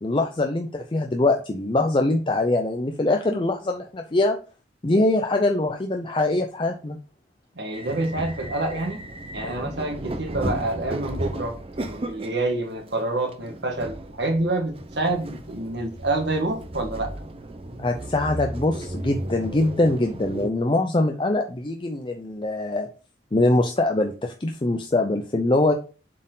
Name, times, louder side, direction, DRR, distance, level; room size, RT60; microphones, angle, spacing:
voice 1, 0.0-4.4 4.8-7.0 9.4-9.7 17.8-22.9 23.3-25.7, left 2 dB, 30° left, 0.5 m, -23 dB
voice 2, 7.5-9.0 9.3-11.6 11.9-17.1, right 2 dB, 70° right, 1.6 m, -27 dB
sound 1, 7.7-20.5, right 1 dB, 30° right, 0.6 m, -35 dB
7.4 x 4.3 x 3.9 m
head